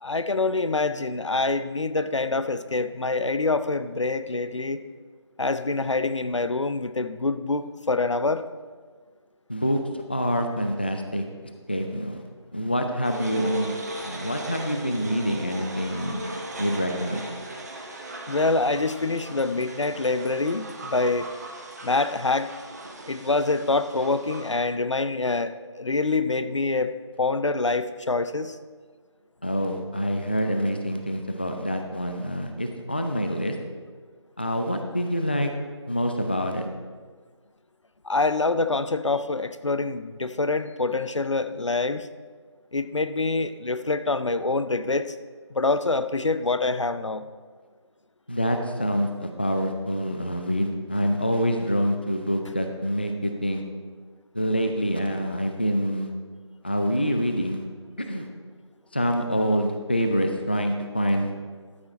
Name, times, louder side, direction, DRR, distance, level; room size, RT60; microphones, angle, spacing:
voice 1, 0.0-4.8 5.4-8.5 18.3-21.3 21.8-22.5 23.1-28.6 38.0-42.1 42.7-45.1 45.5-47.3, left 3 dB, 75° left, 12 dB, 0.6 m, -25 dB
voice 2, 9.5-11.2 11.7-12.2 12.5-13.7 14.0-16.3 16.6-17.3 29.4-33.6 34.4-35.5 35.9-36.7 48.3-53.6 54.3-56.1 56.6-57.6 58.0-58.3 58.9-61.3, equal, 20° left, 5 dB, 0.4 m, -26 dB
sound 1, 13.0-24.5, right 1 dB, 35° right, 1.0 m, -38 dB
12.5 x 7.4 x 4.2 m, 1.5 s
figure-of-eight pair, 160°, 16 cm